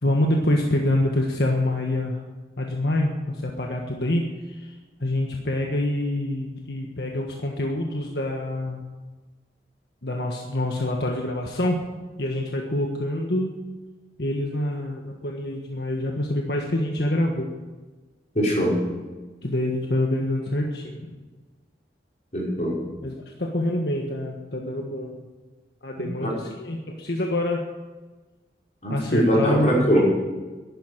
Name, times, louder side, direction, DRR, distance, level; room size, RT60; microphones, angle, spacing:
voice 1, 0.0-2.2 2.6-4.7 5.0-8.8 10.0-11.9 12.2-13.5 14.2-17.5 19.4-21.1 23.0-25.2 25.8-27.6 28.9-30.0, left 1 dB, 75° left, 1 dB, 1.5 m, -26 dB
voice 2, 18.3-18.8 22.3-22.8 25.9-26.3 28.8-30.0, equal, 40° left, -5 dB, 5.8 m, -22 dB
11.5 x 10.5 x 9.2 m, 1.3 s
head